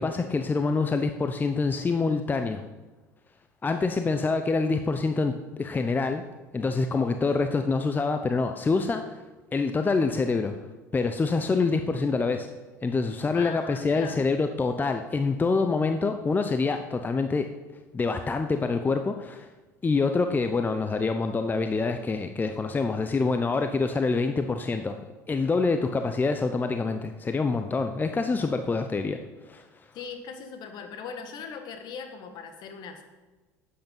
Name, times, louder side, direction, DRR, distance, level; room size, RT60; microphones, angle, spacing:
voice 1, 0.0-2.6 3.6-6.2 6.5-9.2 9.5-10.6 10.9-12.5 12.8-17.5 17.9-19.5 19.8-25.0 25.3-29.2 29.5-29.6, left 4 dB, 20° left, 7 dB, 0.7 m, -26 dB
voice 2, 13.3-14.2 29.9-33.0, left 6 dB, 50° left, 6 dB, 1.8 m, -39 dB
10.0 x 8.6 x 5.4 m, 1.2 s
hypercardioid pair, 75°, 9 cm